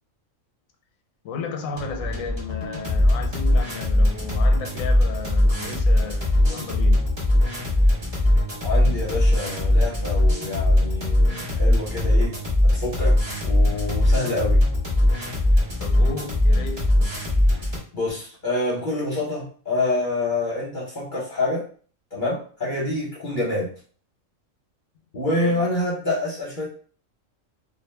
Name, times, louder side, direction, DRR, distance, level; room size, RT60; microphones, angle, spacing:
voice 1, 1.2-7.1 15.8-16.9 25.3-25.6, left 4 dB, 90° left, 1.0 m, -34 dB
sound 1, 1.7-17.8, left 1 dB, 25° right, 0.9 m, -20 dB
voice 2, 8.6-12.3 12.7-13.2 13.4-14.6 17.9-21.6 22.1-23.7 25.1-26.7, left 2 dB, 45° left, 0.8 m, -27 dB
2.4 x 2.2 x 3.1 m
omnidirectional pair, 1.4 m